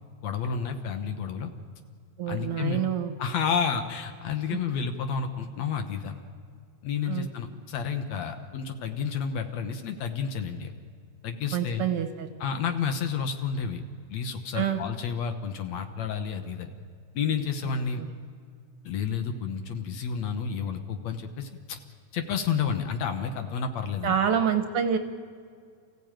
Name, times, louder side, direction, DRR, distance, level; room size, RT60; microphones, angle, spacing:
voice 1, 0.2-1.5 2.3-2.8 3.2-6.2 6.8-10.7 11.2-11.8 12.4-13.8 14.1-16.7 17.1-18.0 18.9-21.8 22.1-24.2, left 6 dB, 70° left, 7 dB, 2.3 m, -30 dB
voice 2, 2.2-3.1 4.5-4.6 7.1-7.3 11.5-12.3 14.5-14.8 17.7-18.1 24.0-25.0, right 8 dB, 60° right, 8 dB, 1.8 m, -27 dB
28.0 x 15.5 x 9.0 m, 2.2 s
omnidirectional pair, 3.3 m